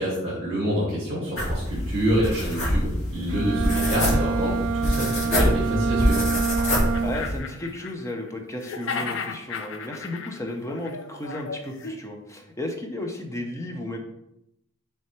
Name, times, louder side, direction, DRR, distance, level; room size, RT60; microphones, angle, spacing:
voice 1, 0.0-6.2, equal, 25° right, -9 dB, 2.2 m, -27 dB
sound 1, 1.4-7.4, left 1 dB, 70° left, 1.8 m, -25 dB
Bowed string instrument, 3.3-7.4, right 5 dB, 65° right, 0.3 m, -27 dB
sound 2, 6.4-6.5 6.8-8.3 8.6-12.0, left 5 dB, 55° left, 0.5 m, -35 dB
voice 2, 6.7-14.0, left 1 dB, 15° left, 3 dB, 0.6 m, -34 dB
6.3 x 3.4 x 4.5 m, 0.85 s
head